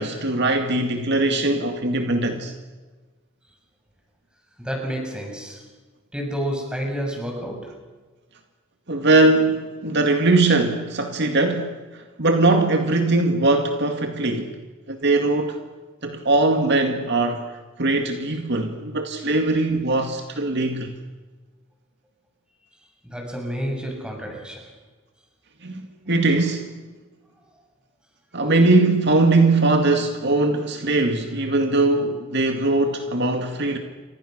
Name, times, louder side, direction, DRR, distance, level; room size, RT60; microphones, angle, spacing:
voice 1, 0.0-2.5 8.9-14.5 14.9-15.6 16.0-17.5 17.8-21.0 25.6-26.7 28.3-33.8, right 2 dB, 50° right, 2.3 m, -21 dB
voice 2, 4.6-5.7 6.1-7.9 22.7-24.7 33.7-33.8, equal, 5° right, 7.1 m, -30 dB
29.5 x 26.0 x 6.7 m
head